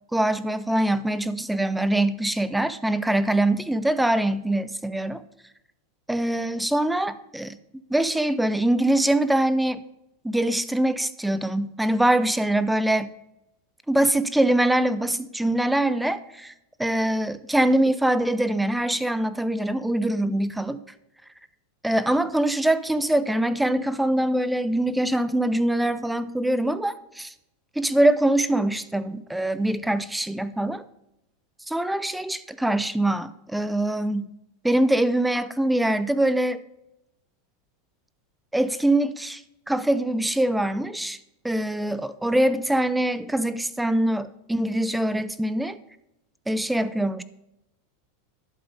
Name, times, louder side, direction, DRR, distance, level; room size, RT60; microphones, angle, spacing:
voice 1, 0.1-5.2 6.1-7.6 7.9-9.8 10.2-13.1 13.9-16.5 16.8-20.8 21.8-27.3 27.8-30.8 31.7-34.3 34.6-36.6 38.5-39.4 39.7-41.2 41.4-45.8 46.5-47.2, right 1 dB, 5° right, 15 dB, 0.6 m, -23 dB
11.0 x 7.8 x 5.2 m, 0.86 s
hypercardioid pair, 120°, 0 cm